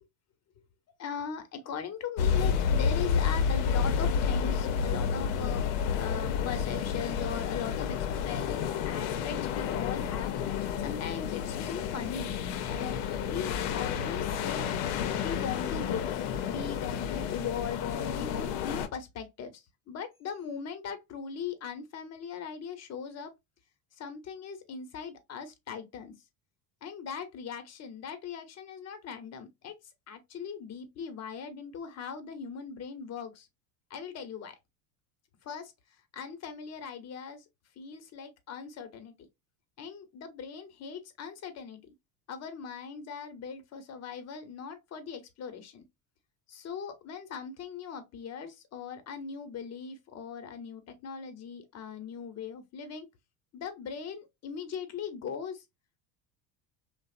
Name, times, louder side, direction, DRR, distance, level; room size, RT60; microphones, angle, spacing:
voice 1, 1.0-8.6 8.9-12.3 12.8-14.8 15.1-16.1 16.5-23.3 24.0-26.2 26.8-29.7 30.1-33.5 33.9-34.6 35.4-35.7 36.1-37.4 37.8-39.1 39.8-41.9 42.3-45.8 46.5-53.1 53.5-55.6, left 6 dB, 35° left, 0.7 m, -39 dB
sound 1, 2.2-18.9, left 7 dB, 75° left, 0.6 m, -30 dB
2.7 x 2.0 x 2.4 m
supercardioid pair, 90°, 45 cm